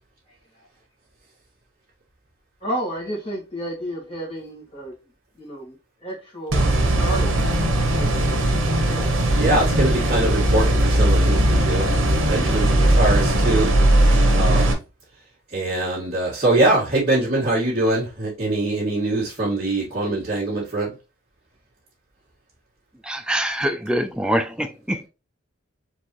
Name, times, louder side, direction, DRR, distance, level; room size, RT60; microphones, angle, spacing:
voice 1, 2.6-5.0 5.4-5.7 6.0-7.3 7.9-8.6 8.9-9.1, right 1 dB, 25° left, 1.9 m, -31 dB
sound 1, 6.5-14.7, right 1 dB, 65° right, 1.3 m, -18 dB
voice 2, 9.4-11.9 12.3-13.7 14.3-14.8 15.5-20.9, right 2 dB, 30° right, 1.9 m, -23 dB
voice 3, 23.0-25.1, equal, 5° right, 0.3 m, -24 dB
4.6 x 3.6 x 3.1 m
head